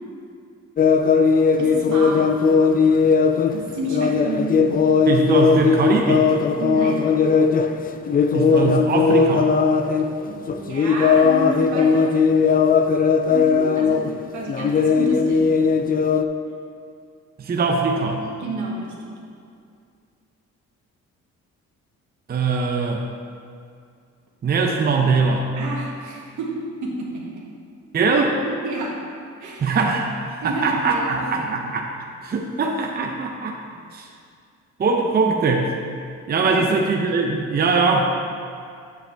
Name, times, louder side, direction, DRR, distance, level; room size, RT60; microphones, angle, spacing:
sound 1, 0.8-10.1 10.5-14.2 14.5-16.2, left 5 dB, 30° left, 0.4 m, -18 dB
voice 1, 1.6-2.3 2.7-3.0 3.5-4.8 6.6-7.0 10.3-12.1 13.3-15.5 18.1-19.1 25.6-27.5 28.4-29.0 29.4-29.8 30.4-31.6 36.4-36.7, right 1 dB, 75° right, -3 dB, 1.8 m, -30 dB
voice 2, 5.1-6.4 8.3-9.5 17.4-18.2 22.3-23.0 24.4-25.5 27.9-28.4 29.6-31.9 32.2-33.6 33.9-34.1 34.8-35.7 36.3-38.2, right 4 dB, 30° right, 1 dB, 0.6 m, -21 dB
8.1 x 7.5 x 3.4 m, 2.3 s
cardioid pair, 90°, 30 cm